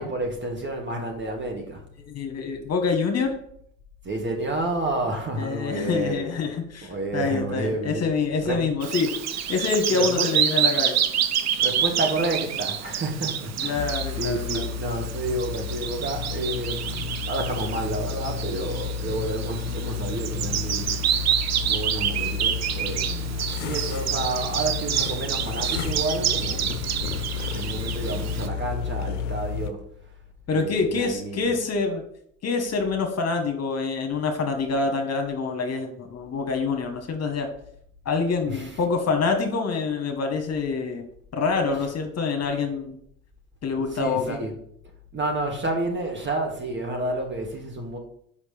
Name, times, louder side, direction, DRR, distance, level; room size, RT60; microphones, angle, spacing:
voice 1, 0.0-1.8 4.0-6.3 6.8-8.2 8.4-8.6 9.9-10.3 11.6-20.9 21.2-21.3 21.6-26.7 27.5-29.9 30.5-31.6 38.5-38.8 41.7-41.8 43.8-44.5 45.1-48.0, right 2 dB, 30° right, 2.0 m, -30 dB
voice 2, 2.1-3.4 5.4-9.2 9.5-10.9 13.6-14.6 30.5-32.0 32.4-37.5 38.0-41.1 41.3-43.0 43.6-44.4, left 4 dB, 45° left, 1.3 m, -26 dB
Bird vocalization bird call bird song, 8.8-28.5, right 9 dB, 50° right, 0.7 m, -28 dB
sound 1, 13.8-29.7, left 7 dB, 90° left, 0.5 m, -32 dB
5.4 x 5.1 x 5.1 m
hypercardioid pair, 65°, 35 cm